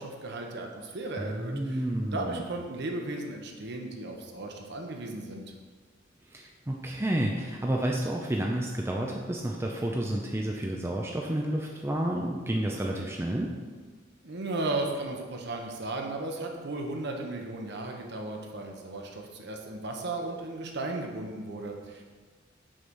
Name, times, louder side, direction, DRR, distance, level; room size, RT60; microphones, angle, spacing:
voice 1, 0.0-5.4 14.2-22.0, right 2 dB, 60° right, 1 dB, 0.9 m, -35 dB
voice 2, 1.2-2.4 6.3-13.5, right 1 dB, 15° right, -1 dB, 0.5 m, -30 dB
6.3 x 4.0 x 6.2 m, 1.5 s
head